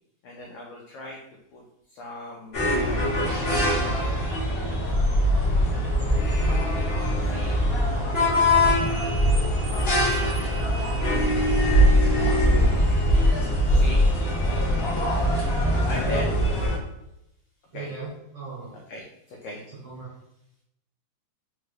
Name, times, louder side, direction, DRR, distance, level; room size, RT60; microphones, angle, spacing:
voice 1, 0.2-1.2 1.5-1.6 1.9-3.1 3.5-4.8 7.2-7.6 13.7-14.0 15.8-16.3 17.7-17.9 18.9-19.6, left 1 dB, 85° left, -2 dB, 1.3 m, -38 dB
sound 1, 2.5-16.8, equal, 50° left, 0.7 m, -22 dB
voice 2, 8.8-11.2 17.7-18.8 19.7-20.1, right 3 dB, 60° right, -6 dB, 1.5 m, -42 dB
4.5 x 2.2 x 3.3 m, 0.81 s
omnidirectional pair, 3.3 m